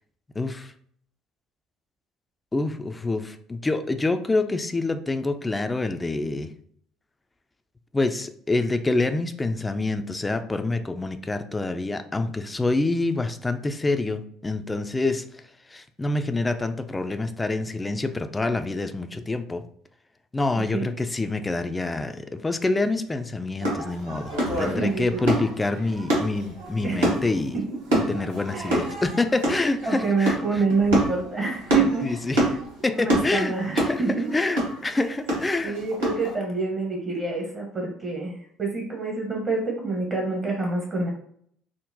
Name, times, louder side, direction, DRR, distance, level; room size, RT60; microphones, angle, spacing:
voice 1, 0.4-0.7 2.5-6.5 7.9-15.2 15.7-19.6 20.3-27.6 27.9-30.6 32.0-32.4 32.8-35.8, left 2 dB, 20° left, 8 dB, 0.3 m, -26 dB
voice 2, 20.5-20.9 24.6-25.2 25.8-25.9 26.8-27.1 27.5-27.8 28.5-28.9 29.8-32.1 32.4-32.6 33.0-34.3 35.6-41.1, right 4 dB, 40° right, 0 dB, 0.8 m, -27 dB
sound 1, 23.6-36.3, right 1 dB, 85° right, 1.0 m, -27 dB
3.7 x 2.0 x 2.6 m, 0.63 s
hypercardioid pair, 60°, 0 cm